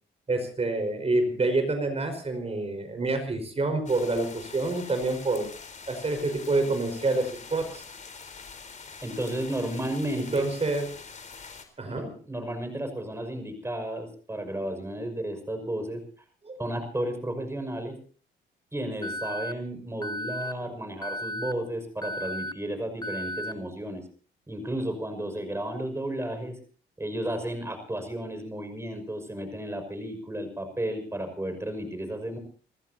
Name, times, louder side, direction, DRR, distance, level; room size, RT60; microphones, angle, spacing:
voice 1, 0.3-5.5 5.9-7.8 10.3-10.9 11.8-12.1 16.5-16.6 20.8-20.9, right 2 dB, 30° right, 7 dB, 5.1 m, -27 dB
sound 1, 3.9-11.6, left 5 dB, 40° left, 4.0 m, -45 dB
voice 2, 9.0-10.5 11.8-16.0 16.6-18.0 18.7-24.0 24.5-26.6 27.0-32.4, right 1 dB, 15° right, 7 dB, 6.0 m, -33 dB
Alarm, 19.0-19.5 20.0-20.5 21.0-21.5 22.0-22.5 23.0-23.5, left 1 dB, 20° left, 1.1 m, -34 dB
30.0 x 15.0 x 2.8 m, 0.43 s
cardioid pair, 90°, 20 cm